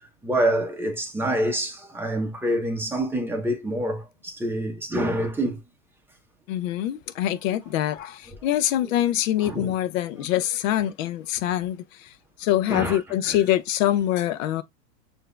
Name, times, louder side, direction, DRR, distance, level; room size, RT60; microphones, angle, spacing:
voice 1, 0.2-5.6 9.4-9.7 10.2-10.3 12.7-13.0 13.2-13.4, right 1 dB, 5° right, 0.9 m, -26 dB
voice 2, 6.5-12.1 12.4-14.6, left 12 dB, 55° left, 0.7 m, -24 dB
6.5 x 2.7 x 2.3 m
hypercardioid pair, 110°, 47 cm